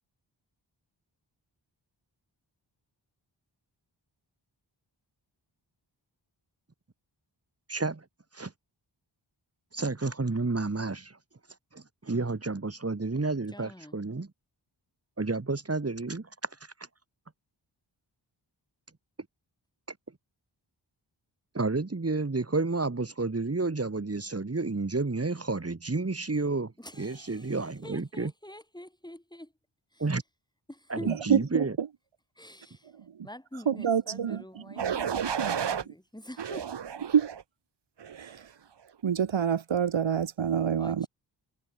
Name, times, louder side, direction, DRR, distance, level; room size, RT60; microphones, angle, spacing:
voice 1, 7.7-8.0 8.3-8.5 9.7-11.2 11.7-14.3 15.2-16.3 21.5-28.3 30.0-30.2 30.9-31.8, right 3 dB, 30° right, 2.2 m, -30 dB
voice 2, 13.5-14.0 26.8-29.5 29.9-30.0 30.7-31.2 32.4-32.9 33.2-36.7 40.0-40.2 40.8-41.1, left 1 dB, 10° left, 5.6 m, -46 dB
voice 3, 31.1-31.9 33.7-34.9 35.4-35.9 37.1-37.3 38.2-38.4 39.0-41.1, right 8 dB, 80° right, 1.2 m, -27 dB
sound 1, 34.8-35.8 36.4-37.4 38.0-38.4, right 8 dB, 65° right, 1.0 m, -32 dB
wide cardioid pair, 55°, 46 cm